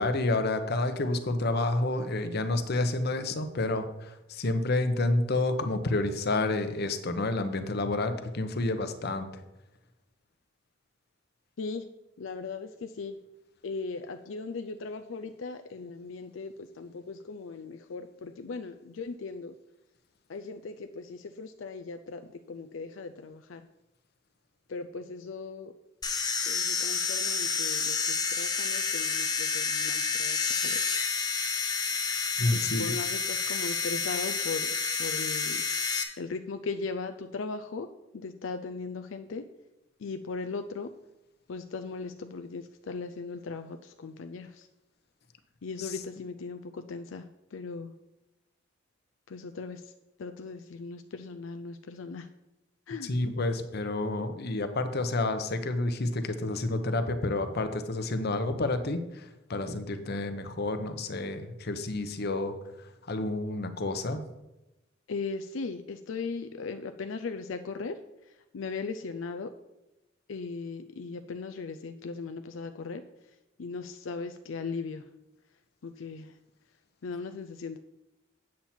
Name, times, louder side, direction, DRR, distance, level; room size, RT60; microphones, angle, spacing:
voice 1, 0.0-9.4 32.4-33.0 45.8-46.0 53.0-64.2, left 2 dB, 55° left, 8 dB, 0.9 m, -29 dB
voice 2, 12.2-13.2 13.6-19.5 20.3-22.2 22.5-23.6 24.7-25.7 26.5-30.8 32.4-34.7 35.0-35.6 36.2-37.9 38.1-39.4 40.0-40.9 41.5-44.7 45.6-47.2 47.5-47.9 49.3-49.8 50.2-52.3 52.9-53.1 65.1-68.0 68.5-69.5 70.3-73.0 73.6-75.0 75.8-76.3 77.0-77.8, left 4 dB, 85° left, 8 dB, 0.5 m, -38 dB
sound 1, 26.0-36.0, left 5 dB, 20° left, 0.9 m, -29 dB
8.7 x 7.4 x 4.4 m, 0.95 s
head